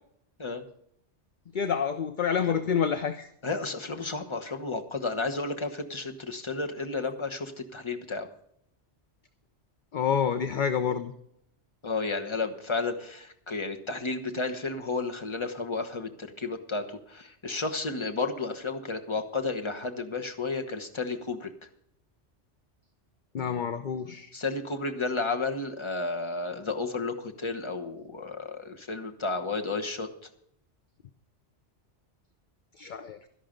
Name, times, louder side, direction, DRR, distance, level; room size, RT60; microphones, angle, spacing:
voice 1, 1.5-3.3 9.9-11.1 23.3-24.3 32.8-33.2, left 7 dB, 50° left, 10 dB, 0.8 m, -28 dB
voice 2, 3.4-8.3 11.8-21.5 24.3-30.1, left 3 dB, 25° left, 5 dB, 1.2 m, -32 dB
12.5 x 11.5 x 5.2 m, 0.72 s
omnidirectional pair, 1.2 m